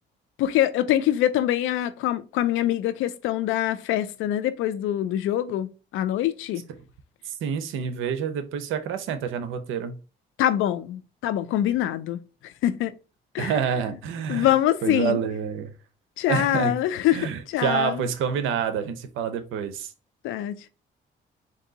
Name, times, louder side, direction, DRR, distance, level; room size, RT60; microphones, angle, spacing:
voice 1, 0.4-6.6 10.4-12.9 13.3-13.5 14.3-15.2 16.2-18.0 20.2-20.7, left 12 dB, 85° left, 0.4 m, -24 dB
voice 2, 7.3-10.0 13.4-14.5 14.8-15.7 16.3-16.8 17.1-19.9, right 7 dB, 90° right, 0.7 m, -28 dB
3.7 x 2.7 x 3.8 m
cardioid pair, 90°, 20 cm